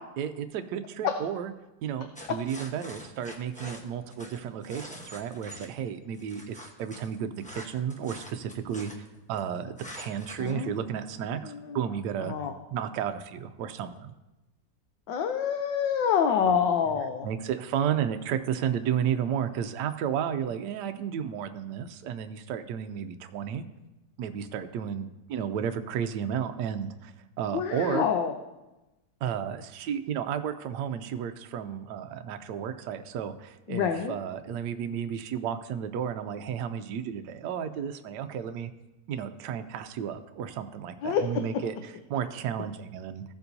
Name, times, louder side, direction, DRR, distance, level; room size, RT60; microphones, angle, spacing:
voice 1, 0.2-1.5 1.8-12.3 12.7-14.1 17.2-23.6 24.2-28.1 29.2-38.7 39.1-43.2, right 8 dB, 75° right, 7 dB, 1.1 m, -33 dB
sound 1, 2.1-5.7 6.1-9.4 9.8-10.5, equal, 5° left, 0.6 m, -45 dB
voice 2, 10.4-10.8 11.4-11.9 12.2-12.5 15.1-17.3 27.5-28.3 33.7-34.1 41.0-41.4, left 7 dB, 80° left, 5 dB, 1.4 m, -27 dB
15.5 x 7.0 x 2.7 m, 1.0 s
omnidirectional pair, 2.0 m